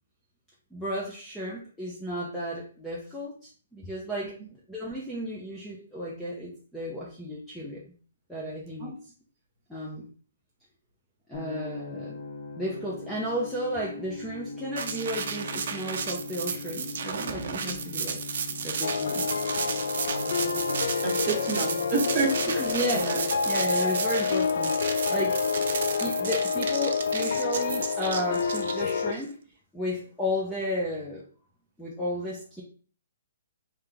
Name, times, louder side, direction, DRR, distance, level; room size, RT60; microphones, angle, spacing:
voice 1, 0.7-4.3 4.7-7.8 8.3-8.9 9.7-10.1 11.3-12.2 12.6-18.2 18.6-19.3 22.5-25.4 26.0-29.4 29.7-31.2 31.8-32.6, equal, ahead, -6 dB, 0.5 m, -33 dB
sound 1, 11.3-27.3, left 4 dB, 90° left, 0.9 m, -43 dB
sound 2, 14.8-29.2, right 6 dB, 55° right, 0.5 m, -33 dB
sound 3, 18.8-29.1, left 5 dB, 65° left, 0.3 m, -28 dB
voice 2, 20.1-22.3 22.9-23.2 25.8-25.9, right 4 dB, 25° right, -1 dB, 1.2 m, -30 dB
3.2 x 2.8 x 3.8 m, 0.41 s
hypercardioid pair, 170°, 0 cm